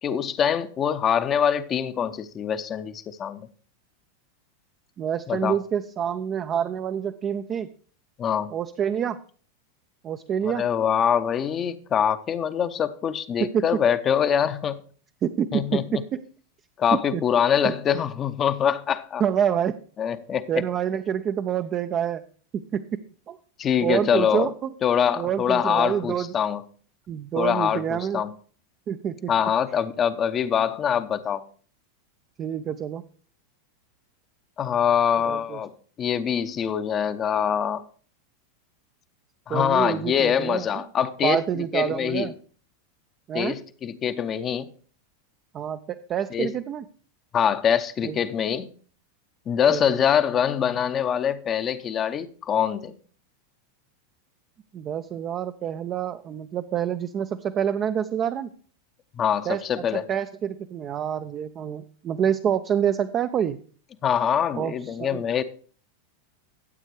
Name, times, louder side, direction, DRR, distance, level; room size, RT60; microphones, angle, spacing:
voice 1, 0.0-3.4 5.3-5.6 8.2-8.5 10.5-14.8 15.5-16.0 16.8-19.2 20.0-20.5 23.6-24.5 24.8-26.6 27.4-28.3 29.3-31.4 34.6-35.7 36.0-37.8 39.5-42.3 43.3-44.7 46.3-46.5 47.3-48.7 49.5-52.9 59.2-60.0 64.0-65.4, left 8 dB, 30° left, 0.7 m, -24 dB
voice 2, 5.0-7.7 8.5-9.2 10.0-10.6 13.4-13.6 15.2-15.8 16.1-16.2 17.1-17.2 17.6-17.7 19.2-19.8 20.5-22.2 22.5-22.8 23.3-23.4 23.8-24.7 25.2-26.3 27.1-28.2 28.9-29.3 32.4-33.0 35.2-35.6 39.5-40.7 41.2-42.3 43.3-43.6 45.5-46.8 48.0-48.2 49.7-49.8 54.7-58.5 59.5-63.6 64.5-65.2, right 9 dB, 30° right, 0.5 m, -27 dB
13.5 x 8.1 x 3.3 m
figure-of-eight pair, 90°, 0 cm